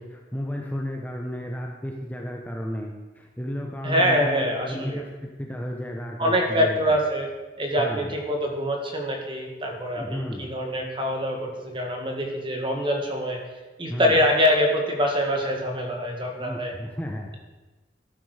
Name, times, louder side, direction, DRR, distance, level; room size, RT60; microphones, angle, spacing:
voice 1, 0.0-6.8 7.8-8.1 10.0-10.5 13.9-14.2 16.4-17.3, equal, 10° left, 1 dB, 1.0 m, -33 dB
voice 2, 3.8-5.0 6.2-7.3 7.6-13.4 13.8-16.7, equal, 25° right, 2 dB, 2.1 m, -24 dB
13.5 x 11.5 x 5.0 m, 1.2 s
head